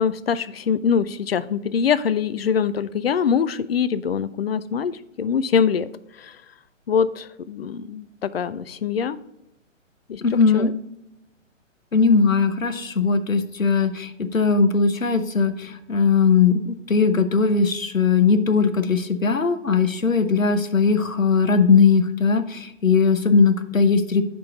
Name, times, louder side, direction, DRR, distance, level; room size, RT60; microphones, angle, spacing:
voice 1, 0.0-5.9 6.2-6.4 6.9-9.2 10.1-10.2 10.5-10.7, left 7 dB, 50° left, 15 dB, 0.5 m, -23 dB
voice 2, 10.2-10.7 11.9-24.2, left 5 dB, 85° left, 10 dB, 0.8 m, -19 dB
9.3 x 3.8 x 3.9 m, 0.87 s
figure-of-eight pair, 125°, 39 cm